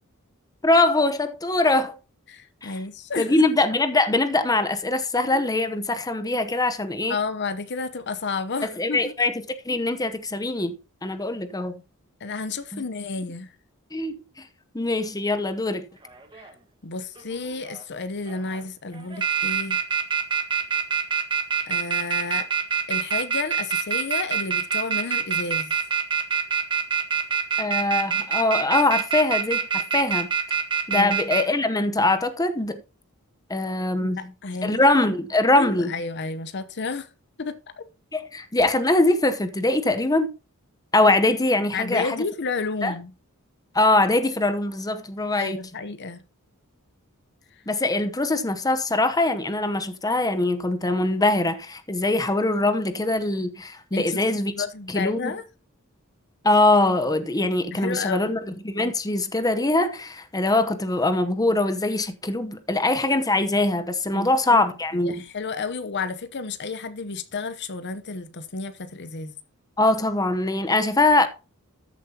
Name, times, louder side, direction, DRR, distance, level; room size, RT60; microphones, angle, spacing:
voice 1, 0.6-2.0 2.6-2.8 3.2-7.2 8.8-9.3 9.6-10.7 11.0-11.8 12.7-12.8 13.9-14.5 14.7-15.8 27.6-30.3 30.9-32.8 33.5-34.3 34.6-35.9 38.1-40.3 40.9-42.2 42.8-42.9 43.7-45.6 47.7-54.5 54.9-55.3 56.4-65.2 69.8-71.3, left 2 dB, 15° left, 0.9 m, -22 dB
voice 2, 2.3-3.4 7.1-9.1 12.2-13.5 16.3-16.5 16.8-19.8 21.7-22.5 22.9-25.7 30.9-31.1 34.0-34.8 35.5-37.1 37.4-37.8 41.7-43.1 45.4-46.2 53.9-54.2 54.5-55.4 57.7-58.3 64.1-64.6 64.9-69.3, left 4 dB, 55° left, 0.9 m, -31 dB
sound 1, 16.1-16.5 17.2-17.8 18.3-18.6 18.9-31.4, right 7 dB, 20° right, 1.5 m, -24 dB
13.5 x 7.4 x 2.9 m
head